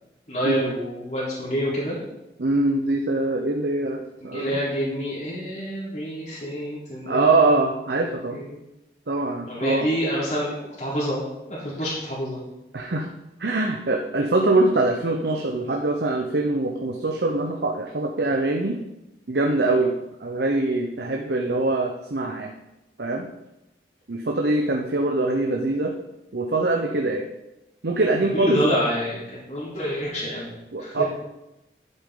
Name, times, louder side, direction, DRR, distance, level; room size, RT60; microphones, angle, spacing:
voice 1, 0.3-2.0 4.2-7.5 8.3-8.6 9.5-11.2 11.6-12.4 28.4-30.5 30.8-31.0, equal, 40° left, -8 dB, 3.9 m, -27 dB
voice 2, 2.4-4.6 7.1-8.4 9.1-9.9 12.7-13.1 13.4-18.8 19.3-19.9 20.2-22.5 23.0-23.3 24.1-25.9 26.3-27.3 27.8-28.8 30.7-31.0, right 2 dB, 70° right, 2 dB, 0.8 m, -23 dB
11.0 x 8.2 x 3.9 m, 0.94 s
head